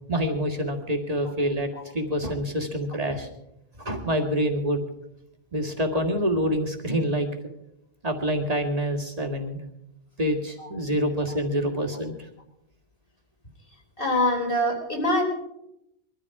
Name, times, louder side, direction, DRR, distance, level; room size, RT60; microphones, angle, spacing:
voice 1, 0.1-3.3 3.8-4.8 5.5-7.3 8.0-9.6 10.2-12.1, equal, 35° right, 4 dB, 2.2 m, -26 dB
voice 2, 14.0-15.2, left 1 dB, 60° left, 1 dB, 3.9 m, -24 dB
22.0 x 13.0 x 4.8 m, 0.82 s
omnidirectional pair, 1.1 m